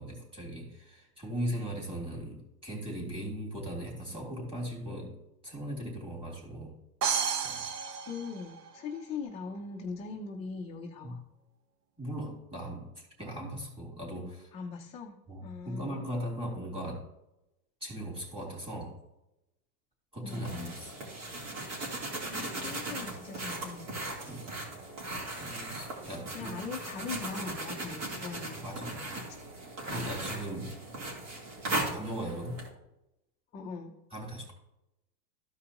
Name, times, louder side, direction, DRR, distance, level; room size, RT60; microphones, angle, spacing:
voice 1, 0.0-5.1 5.4-6.7 7.4-7.7 11.0-11.1 12.0-14.5 15.3-17.0 17.8-18.9 20.1-20.9 24.3-24.5 25.4-26.6 28.5-29.2 29.9-30.8 31.9-32.6 34.1-34.5, equal, 10° right, -2 dB, 3.2 m, -38 dB
sound 1, 7.0-9.0, right 6 dB, 75° right, 1.0 m, -32 dB
voice 2, 8.0-11.2 14.5-16.1 20.2-20.8 22.3-24.0 26.3-29.0 29.9-30.2 33.5-34.0, left 5 dB, 15° left, -2 dB, 0.5 m, -41 dB
sound 2, 20.3-32.7, right 1 dB, 55° right, 3.3 m, -38 dB
14.0 x 4.9 x 2.9 m, 0.89 s
supercardioid pair, 145°, 47 cm